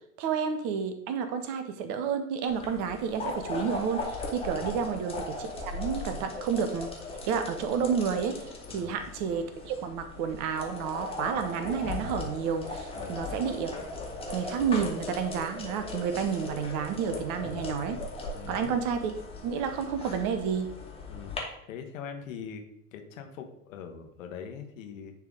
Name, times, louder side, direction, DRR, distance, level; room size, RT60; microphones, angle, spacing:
voice 1, 0.2-6.9 7.3-13.8 14.3-18.0 18.5-19.1 19.4-20.7, right 6 dB, 40° right, 8 dB, 0.9 m, -30 dB
sound 1, 2.5-21.4, left 2 dB, 10° left, 1.6 m, -38 dB
voice 2, 12.9-13.3 18.3-18.7 21.1-21.4 21.7-22.6 22.9-25.1, left 7 dB, 60° left, 5 dB, 1.2 m, -42 dB
10.0 x 3.5 x 3.7 m, 0.76 s
figure-of-eight pair, 80°, 46 cm